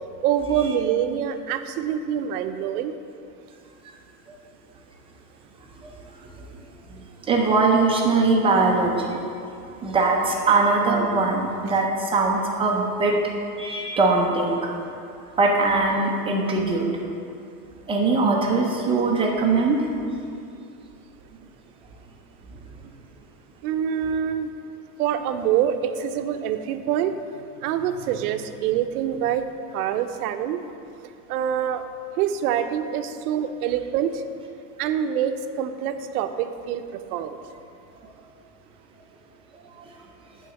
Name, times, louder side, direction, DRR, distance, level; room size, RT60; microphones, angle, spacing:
voice 1, 0.2-2.9 23.6-24.5 25.0-27.2 27.6-29.5 29.7-30.6 31.3-31.8 32.2-34.2 34.8-37.4, right 9 dB, 65° right, 8 dB, 0.7 m, -25 dB
voice 2, 7.3-9.2 9.8-13.2 13.6-14.7 15.4-16.9 17.9-19.9, right 3 dB, 10° right, -1 dB, 0.4 m, -21 dB
9.2 x 3.9 x 7.0 m, 2.5 s
supercardioid pair, 145°, 49 cm